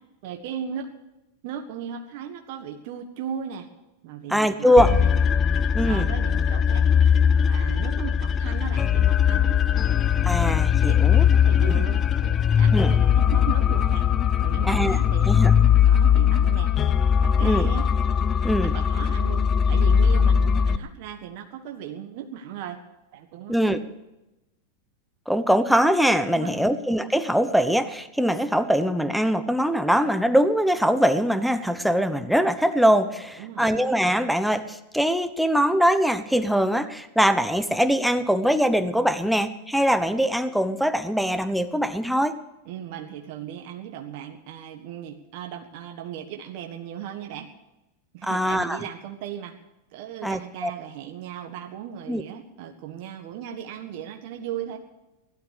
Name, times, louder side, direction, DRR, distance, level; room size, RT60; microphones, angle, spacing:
voice 1, 0.2-0.9 1.4-3.7 4.0-5.1 5.8-6.8 7.5-9.6 10.9-14.1 14.4-16.7 17.2-17.9 18.6-22.8 23.1-23.7 26.3-26.7 33.4-33.8 42.6-47.5 48.1-49.6 49.9-54.8, right 9 dB, 60° right, 4 dB, 1.5 m, -37 dB
voice 2, 4.3-4.9 5.7-6.0 10.2-11.3 11.7-11.8 12.7-12.9 14.6-15.0 15.2-15.5 17.4-17.7 18.4-18.7 23.5-23.8 25.3-42.4 48.2-48.8 50.2-50.7 52.1-52.2, equal, ahead, 10 dB, 1.0 m, -22 dB
sound 1, 4.8-20.8, left 8 dB, 30° left, 0.7 m, -20 dB
16.0 x 12.0 x 6.7 m, 0.97 s
hypercardioid pair, 115°, 0 cm